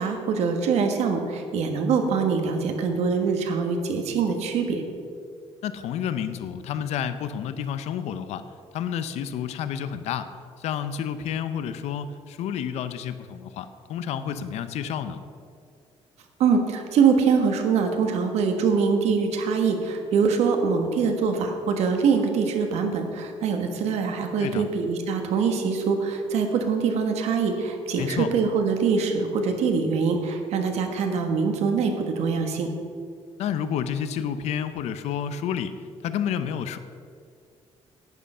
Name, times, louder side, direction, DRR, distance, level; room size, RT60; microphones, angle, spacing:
voice 1, 0.0-4.8 16.4-32.7, right 5 dB, 75° right, 4 dB, 1.4 m, -24 dB
voice 2, 5.6-8.4 8.7-10.3 10.6-15.2 24.4-24.7 28.0-28.3 33.4-35.8 36.0-36.8, left 8 dB, 75° left, 11 dB, 0.6 m, -30 dB
11.0 x 8.9 x 5.5 m, 2.3 s
cardioid pair, 165°, 11 cm